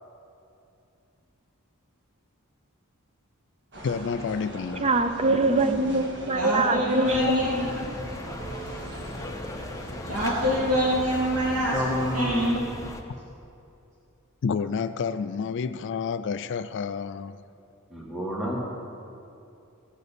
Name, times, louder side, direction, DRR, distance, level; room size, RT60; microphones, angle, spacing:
sound 1, 3.7-12.5, right 1 dB, 55° right, 1.8 m, -42 dB
voice 1, 3.8-5.0 5.3-5.5 14.4-17.4, left 5 dB, 55° left, 0.4 m, -30 dB
voice 2, 4.8-7.9, right 2 dB, 30° right, 0.6 m, -24 dB
voice 3, 6.3-7.6 10.1-12.6, equal, 70° right, 2.3 m, -25 dB
sound 2, 7.1-13.0, left 1 dB, 15° left, 0.8 m, -37 dB
voice 4, 11.7-12.5 17.9-18.6, equal, ahead, 1.5 m, -29 dB
17.0 x 6.7 x 6.9 m
head